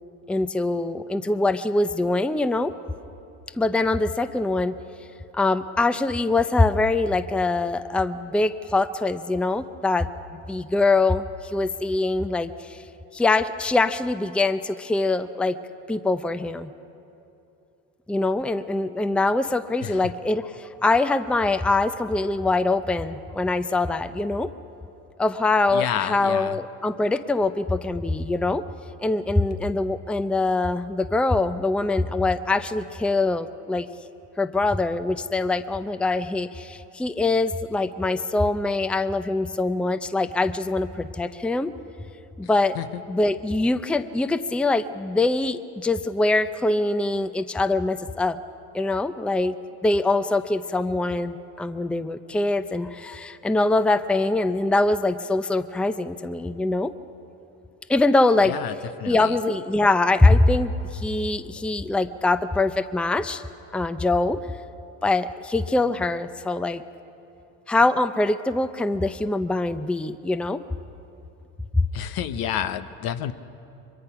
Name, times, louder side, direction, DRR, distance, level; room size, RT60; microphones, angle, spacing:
voice 1, 0.3-2.7 3.6-4.7 5.3-11.2 11.5-12.8 13.1-15.6 15.9-16.7 18.1-24.5 25.2-28.6 29.0-33.9 34.4-41.7 42.4-42.8 43.1-48.4 48.7-49.6 49.8-56.9 57.9-58.5 59.1-63.4 63.7-64.4 65.0-66.8 67.7-70.6, left 2 dB, 5° left, 12 dB, 0.6 m, -23 dB
voice 2, 25.7-26.6 42.7-43.0 58.4-58.7 59.0-59.4 71.9-73.3, left 10 dB, 65° left, 11 dB, 1.0 m, -29 dB
23.5 x 22.5 x 5.9 m, 2.8 s
supercardioid pair, 80°, 39 cm